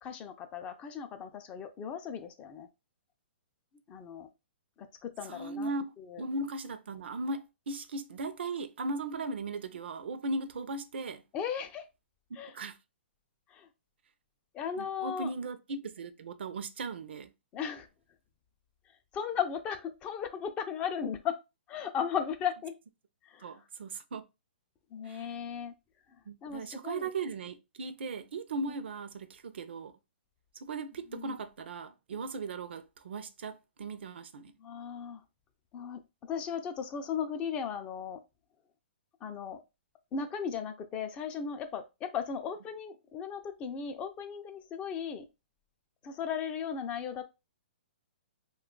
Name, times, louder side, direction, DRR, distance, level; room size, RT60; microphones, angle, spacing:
voice 1, 0.0-2.7 3.9-4.3 4.8-5.7 6.0-6.2 11.3-11.9 12.3-12.6 13.5-13.7 14.5-15.3 17.5-17.9 19.1-21.3 21.7-22.7 23.3-23.5 24.9-25.7 26.4-27.1 31.1-31.3 34.6-35.2 35.7-36.0 36.3-38.2 39.2-39.6 40.1-45.3 46.0-47.2, left 7 dB, 20° left, 0.4 m, -36 dB
voice 2, 5.2-11.2 12.5-12.8 14.7-17.3 23.4-24.2 25.0-25.3 26.3-30.0 30.6-34.5, right 3 dB, 75° right, 0.5 m, -38 dB
2.8 x 2.3 x 3.7 m
hypercardioid pair, 150°, 6 cm